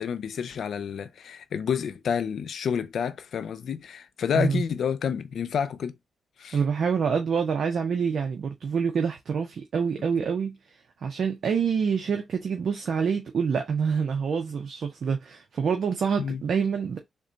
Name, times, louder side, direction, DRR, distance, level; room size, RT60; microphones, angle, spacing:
voice 1, 0.0-5.9 6.4-6.6 16.2-16.4, left 7 dB, 75° left, 0.4 m, -29 dB
voice 2, 6.5-10.6 11.0-17.0, right 6 dB, 65° right, 0.6 m, -26 dB
3.6 x 2.2 x 3.8 m
cardioid pair, 75°, 0 cm